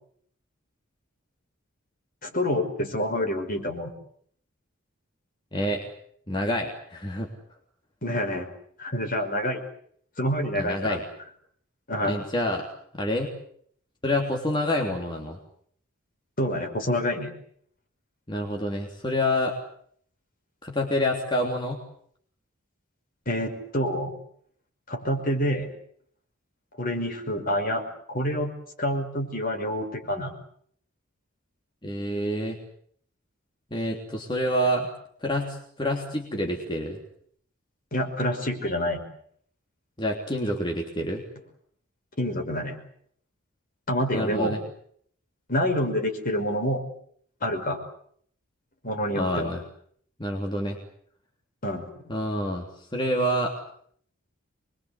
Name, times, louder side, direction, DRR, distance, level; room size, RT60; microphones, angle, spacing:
voice 1, 2.2-3.9 8.0-8.5 8.8-9.6 10.2-11.0 11.9-12.2 16.4-17.3 23.3-24.1 24.9-25.7 26.8-27.8 28.1-28.5 28.8-30.3 37.9-39.0 42.2-42.8 43.9-44.6 45.5-46.8 47.4-47.8 48.8-49.5 51.6-51.8, equal, 45° left, 5 dB, 5.5 m, -27 dB
voice 2, 5.5-5.9 6.3-7.3 10.5-11.0 12.0-12.7 13.0-13.3 14.0-15.4 18.3-19.6 20.6-21.8 31.8-32.6 33.7-34.9 35.2-37.0 40.0-41.2 44.1-44.6 49.1-49.6 50.2-50.8 52.1-52.6 52.9-53.5, equal, 25° left, 1 dB, 3.3 m, -27 dB
26.0 x 23.0 x 8.3 m, 0.64 s
head